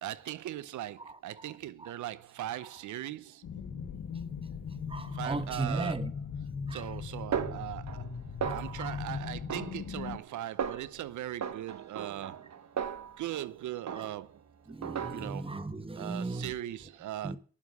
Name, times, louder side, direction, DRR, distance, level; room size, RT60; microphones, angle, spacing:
voice 1, 0.0-3.5 5.1-6.1 6.7-8.0 8.5-12.5 13.2-14.4 15.1-15.5 15.9-17.4, right 13 dB, 85° right, 0.8 m, -39 dB
voice 2, 1.0-1.4 1.8-1.9 4.9-6.1 6.7-6.9 8.4-9.0 13.9-14.1 14.7-16.5 17.2-17.4, right 3 dB, 20° right, 1.3 m, -37 dB
sound 1, 3.4-10.2, left 6 dB, 80° left, 1.7 m, -39 dB
Snare drum, 7.3-8.1 8.4-9.0 9.5-10.3 10.6-11.0 11.4-13.5 13.9-14.4 14.8-15.5, right 8 dB, 65° right, 1.3 m, -37 dB
10.5 x 7.4 x 8.0 m
supercardioid pair, 45°, 29 cm